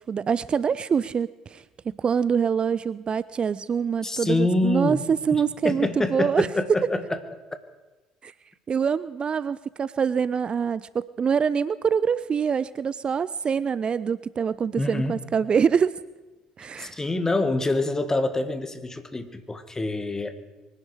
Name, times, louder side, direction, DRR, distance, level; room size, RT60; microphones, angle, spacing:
voice 1, 0.0-6.5 8.2-8.3 8.7-16.0 16.6-17.0, right 6 dB, 35° right, 18 dB, 0.4 m, -25 dB
voice 2, 4.0-5.0 5.3-7.2 14.8-15.2 16.8-20.3, left 2 dB, 20° left, 10 dB, 1.8 m, -26 dB
24.0 x 10.5 x 5.0 m, 1.2 s
hypercardioid pair, 55°, 3 cm